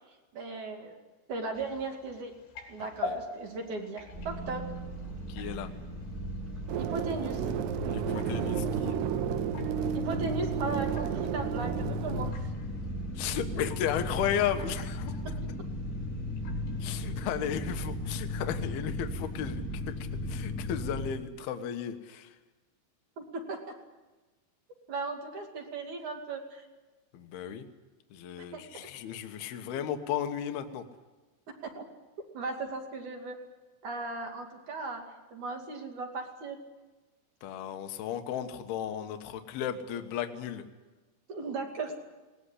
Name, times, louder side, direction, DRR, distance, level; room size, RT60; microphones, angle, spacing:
voice 1, 0.3-1.0 1.3-2.3 2.7-4.6 6.8-7.4 9.9-12.4 23.2-23.8 24.9-26.7 28.5-28.9 31.8-31.9 32.3-33.4 33.8-35.0 35.3-36.6 41.3-42.0, right 3 dB, 50° right, 3 dB, 3.5 m, -37 dB
sound 1, 1.5-20.3, left 4 dB, 85° left, 5.7 m, -48 dB
voice 2, 2.8-3.2 5.3-5.7 7.9-9.0 13.1-15.2 16.8-22.3 27.1-27.7 28.1-30.8 37.4-40.6, left 9 dB, 65° left, 7 dB, 3.0 m, -34 dB
sound 2, 4.1-21.1, left 1 dB, 20° right, 3.2 m, -36 dB
sound 3, 6.7-12.3, right 11 dB, 75° right, 2.7 m, -32 dB
19.5 x 19.5 x 10.0 m, 1.2 s
omnidirectional pair, 5.2 m